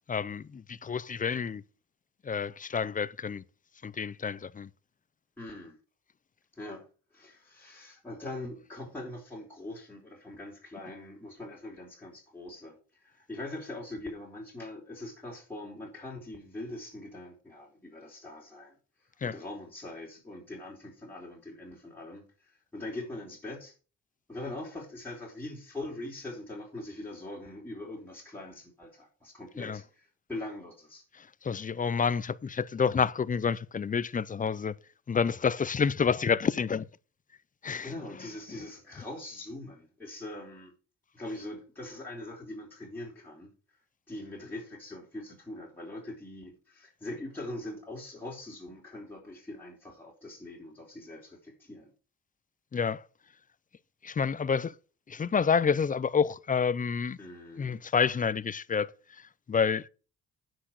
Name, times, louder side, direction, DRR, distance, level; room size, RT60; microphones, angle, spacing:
voice 1, 0.1-1.6 2.2-3.4 3.8-4.7 19.2-19.4 29.6-29.8 31.1-34.7 35.1-36.9 37.6-37.9 52.7-53.0 54.0-54.7 55.1-57.2 57.6-58.9 59.2-59.9, left 6 dB, 25° left, 0.6 m, -29 dB
voice 2, 5.4-5.8 6.5-6.9 7.1-18.8 19.2-23.7 24.3-31.0 37.8-40.7 41.1-43.5 44.1-51.9 57.2-57.8, left 2 dB, 5° left, 4.1 m, -42 dB
10.0 x 6.2 x 6.1 m
cardioid pair, 90°, 30 cm